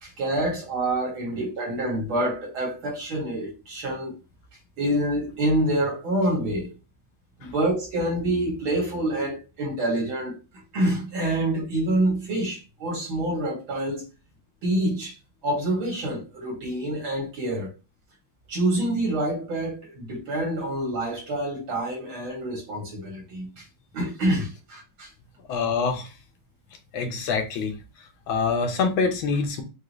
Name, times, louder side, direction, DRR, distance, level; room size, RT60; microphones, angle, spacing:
voice 1, 0.0-4.1 4.8-6.7 7.4-10.3 10.7-14.0 14.6-15.1 15.4-17.7 18.5-23.6 23.9-25.1, right 1 dB, 85° right, 2.9 m, -27 dB
voice 2, 25.5-26.1 26.9-27.7 28.3-29.6, left 5 dB, 85° left, 1.7 m, -25 dB
6.4 x 2.4 x 3.1 m
omnidirectional pair, 2.2 m